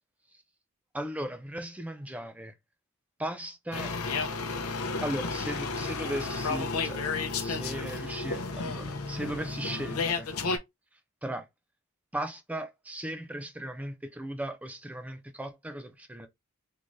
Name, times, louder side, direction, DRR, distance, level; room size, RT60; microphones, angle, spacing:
voice 1, 0.9-2.5 3.2-3.9 5.0-7.0 7.4-10.3 11.2-11.5 12.1-16.3, right 1 dB, 5° right, 0.3 m, -37 dB
sound 1, 3.7-10.6, left 4 dB, 80° left, 0.6 m, -32 dB
3.7 x 3.1 x 2.6 m
head